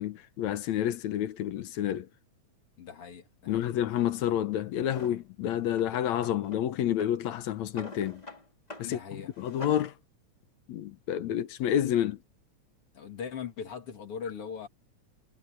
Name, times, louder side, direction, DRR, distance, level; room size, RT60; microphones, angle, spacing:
voice 1, 0.0-2.1 3.5-8.2 8.8-9.0 9.4-9.9 10.7-12.2, left 11 dB, 75° left, 2.2 m, -29 dB
voice 2, 2.8-3.7 8.8-9.4 12.9-14.7, left 7 dB, 55° left, 2.9 m, -40 dB
Drawer open or close, 4.9-5.2 5.7-6.6 6.9-8.4 8.7-8.9 9.2-9.9, left 1 dB, 15° left, 3.5 m, -44 dB
omnidirectional pair, 3.3 m